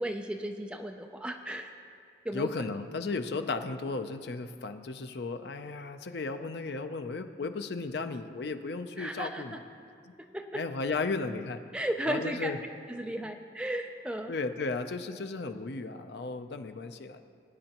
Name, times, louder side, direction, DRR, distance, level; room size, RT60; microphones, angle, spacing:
voice 1, 0.0-1.8 2.2-2.5 9.0-9.6 10.2-10.6 11.7-12.5 12.9-14.3, right 1 dB, 5° right, 4 dB, 0.4 m, -35 dB
voice 2, 2.3-9.6 10.5-11.6 12.1-12.6 13.2-13.3 14.3-17.2, left 3 dB, 65° left, 8 dB, 0.5 m, -35 dB
18.5 x 9.6 x 3.0 m, 2.3 s
head